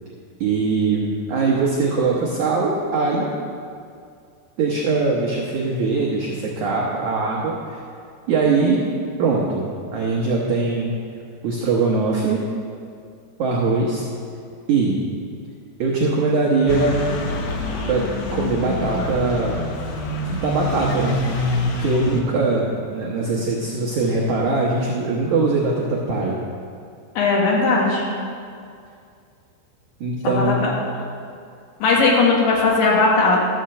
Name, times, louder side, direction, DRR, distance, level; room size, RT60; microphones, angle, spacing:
voice 1, 0.4-3.3 4.6-7.8 8.3-8.8 9.2-10.9 11.4-12.4 13.4-14.0 14.7-15.0 15.8-17.0 17.7-19.6 20.2-21.2 21.7-26.4 30.0-30.6, right 3 dB, 80° right, -4 dB, 1.7 m, -21 dB
sound 1, 16.7-22.2, left 2 dB, 75° left, 1.9 m, -26 dB
voice 2, 27.1-28.0 30.2-30.7 31.8-33.4, left 3 dB, 60° left, -3 dB, 3.1 m, -18 dB
12.5 x 5.8 x 7.6 m, 2.3 s
omnidirectional pair, 5.2 m